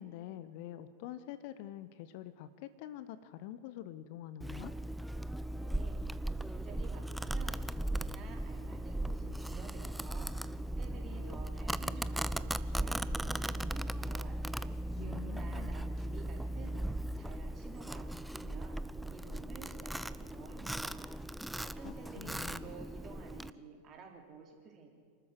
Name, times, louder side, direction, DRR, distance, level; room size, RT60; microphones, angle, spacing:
voice 1, 0.0-4.7 15.0-15.9 21.8-22.8, left 12 dB, 45° left, 13 dB, 0.9 m, -46 dB
Domestic sounds home sounds, 4.4-23.5, right 1 dB, 5° right, 0.5 m, -38 dB
voice 2, 5.6-6.0 6.4-14.4 14.9-16.8 17.1-18.8 19.1-21.1 21.6-24.9, right 5 dB, 30° right, 2 dB, 3.8 m, -52 dB
28.0 x 13.0 x 8.1 m, 2.1 s
figure-of-eight pair, 90°, 0 cm